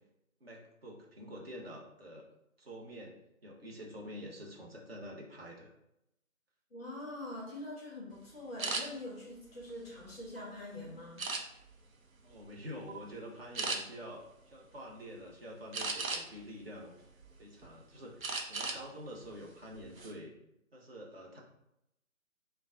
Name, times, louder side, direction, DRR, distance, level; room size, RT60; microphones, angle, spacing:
voice 1, 0.4-2.3 2.6-3.2 3.4-5.7 12.2-16.9 17.4-20.3 20.7-21.4, equal, 45° right, -2 dB, 1.0 m, -47 dB
voice 2, 6.7-11.3, left 1 dB, 10° left, -4 dB, 0.7 m, -44 dB
sound 1, 8.6-8.8 9.5-10.5 11.2-11.8 12.3-12.5 12.9-13.0 13.5-13.8 15.7-16.4 16.9-17.7 18.2-18.8 19.2-19.3 19.8-20.1, right 3 dB, 70° right, 0.7 m, -36 dB
3.8 x 2.3 x 3.7 m, 0.83 s
figure-of-eight pair, 150°, 42 cm